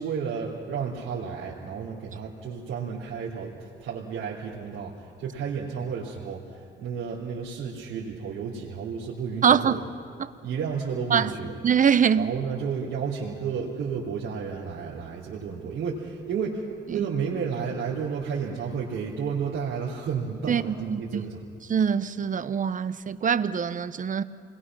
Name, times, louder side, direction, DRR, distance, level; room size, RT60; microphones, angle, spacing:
voice 1, 0.0-9.8 10.4-11.5 12.1-21.4, right 6 dB, 85° right, 3.4 m, -32 dB
voice 2, 9.4-9.8 10.2-10.3 11.1-11.4 11.6-12.3 16.9-17.0 20.5-21.2 21.7-24.2, right 7 dB, 40° right, 0.9 m, -23 dB
28.0 x 21.0 x 6.2 m
cardioid pair, 90°, 20 cm